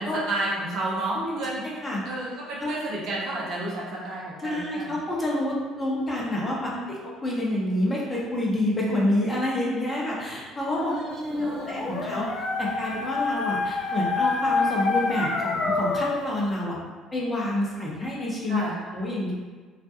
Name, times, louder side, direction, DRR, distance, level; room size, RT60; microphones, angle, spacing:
voice 1, 0.0-1.6 2.0-5.0 6.6-7.0 7.4-7.5 10.7-12.2 18.5-18.8, right 2 dB, 60° right, -4 dB, 0.6 m, -32 dB
voice 2, 1.1-2.0 2.6-2.7 4.4-11.0 11.2-12.3 12.6-16.8 17.1-19.3, left 1 dB, 25° left, -4 dB, 0.8 m, -28 dB
Dog, 11.3-16.4, left 3 dB, 65° left, 0.4 m, -27 dB
2.4 x 2.2 x 2.8 m, 1.4 s
hypercardioid pair, 60°, 0 cm